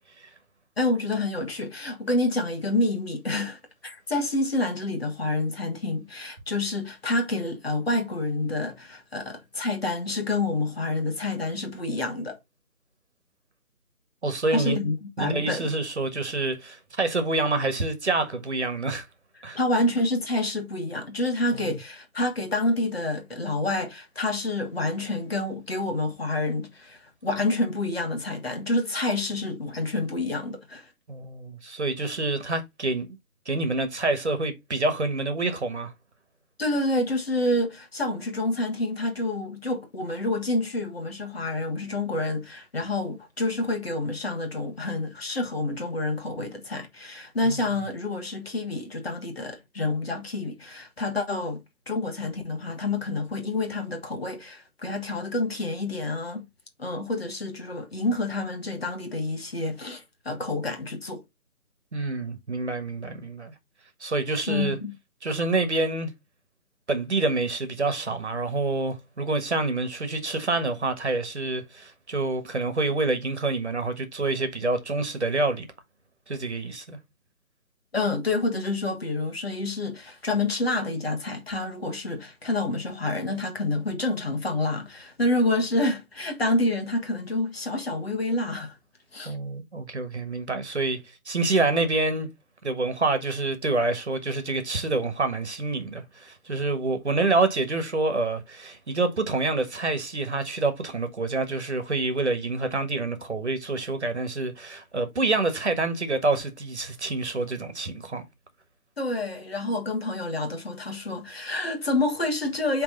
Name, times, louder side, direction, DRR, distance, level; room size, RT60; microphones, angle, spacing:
voice 1, 0.8-12.4 14.5-15.7 19.5-30.9 36.6-56.5 56.8-61.2 64.5-64.9 77.9-88.8 89.1-89.4 109.0-112.8, left 2 dB, 45° left, 1.6 m, -28 dB
voice 2, 14.2-14.8 15.2-19.0 19.4-19.6 21.6-21.8 31.1-33.1 33.4-35.9 47.4-47.6 61.9-63.5 64.0-64.8 65.2-66.1 66.9-75.7 76.3-77.0 89.2-91.0 91.2-92.3 92.6-108.2, right 3 dB, 50° right, 1.5 m, -27 dB
8.4 x 3.5 x 3.9 m
figure-of-eight pair, 155°, 43 cm